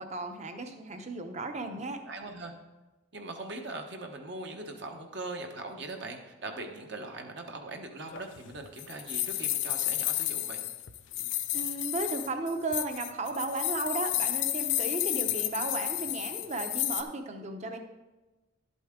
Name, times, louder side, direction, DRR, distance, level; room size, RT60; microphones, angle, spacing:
voice 1, 0.0-2.0 11.5-17.8, right 2 dB, 35° right, 6 dB, 0.8 m, -35 dB
voice 2, 1.5-2.5 3.1-10.6, right 2 dB, 60° right, 3 dB, 1.1 m, -41 dB
sound 1, 8.1-17.0, left 14 dB, 65° left, 0.5 m, -32 dB
11.5 x 8.1 x 3.7 m, 1.1 s
head